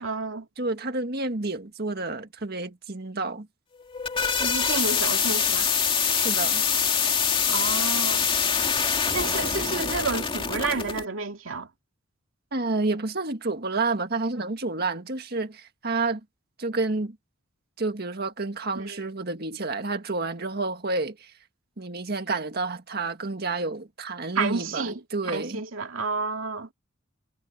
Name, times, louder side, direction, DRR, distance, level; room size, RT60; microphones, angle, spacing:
voice 1, 0.0-0.5 4.4-5.7 7.5-8.3 9.1-11.7 18.8-19.0 24.4-25.0 25.3-26.7, right 4 dB, 80° right, 2.5 m, -30 dB
voice 2, 0.6-3.5 6.1-6.6 12.5-16.2 16.6-17.2 17.8-21.3 21.8-25.6, right 3 dB, 50° right, 1.8 m, -29 dB
sound 1, 3.7-11.0, left 6 dB, 25° left, 2.5 m, -25 dB
head